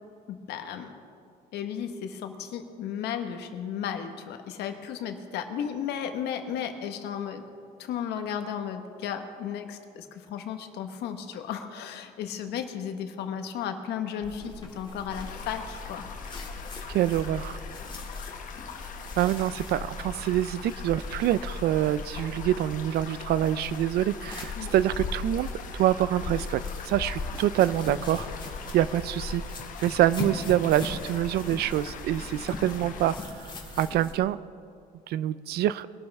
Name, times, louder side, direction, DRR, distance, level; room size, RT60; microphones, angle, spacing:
voice 1, 0.3-0.9 1.5-7.4 7.8-16.0 18.7-18.9 24.6-24.7, left 8 dB, 80° left, 6 dB, 1.4 m, -34 dB
sound 1, 14.2-34.1, left 2 dB, 25° left, 2.4 m, -42 dB
sound 2, 15.1-33.2, left 5 dB, 50° left, 1.4 m, -39 dB
voice 2, 16.9-17.6 19.2-28.3 28.7-29.4 29.8-34.4 35.1-35.9, right 12 dB, 70° right, 17 dB, 0.5 m, -26 dB
22.0 x 12.0 x 3.5 m, 2.3 s
cardioid pair, 110°, 17 cm